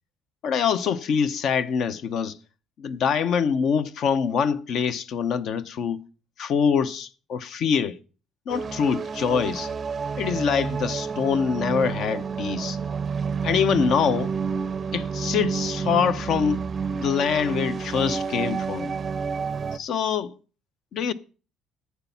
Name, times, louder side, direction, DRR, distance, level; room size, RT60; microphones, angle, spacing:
voice 1, 0.4-2.4 2.8-6.0 6.4-8.0 8.5-9.7 10.2-12.8 13.4-14.3 14.9-16.6 16.9-18.9 19.7-20.3 20.9-21.1, left 7 dB, 55° left, 0.8 m, -24 dB
sound 1, 8.5-19.8, right 6 dB, 30° right, 0.5 m, -29 dB
11.5 x 8.2 x 5.6 m
cardioid pair, 145°, 0 cm